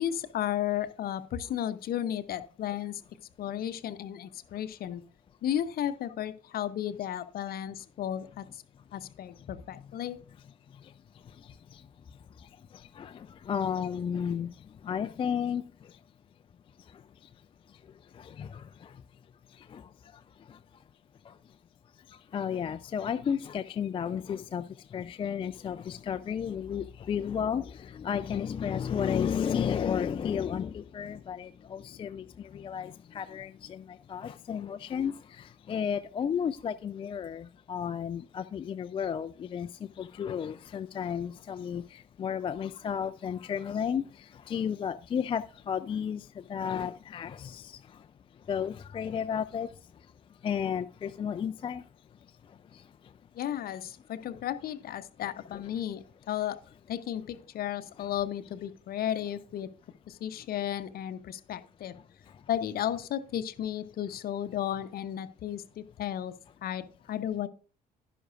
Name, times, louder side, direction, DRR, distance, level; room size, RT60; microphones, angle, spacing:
voice 1, 0.0-3.0 3.4-5.0 5.4-8.4 8.9-10.2 53.3-56.6 56.9-59.7 60.1-61.9 62.5-67.5, left 11 dB, 45° left, 0.8 m, -34 dB
voice 2, 10.7-16.0 16.8-17.3 17.7-19.0 19.5-20.6 21.2-21.6 21.9-51.9 52.3-53.1 54.2-54.4 55.5-55.6 58.0-58.1 61.9-62.4, left 8 dB, 25° left, 0.4 m, -34 dB
11.0 x 11.0 x 2.5 m
figure-of-eight pair, 50°, 21 cm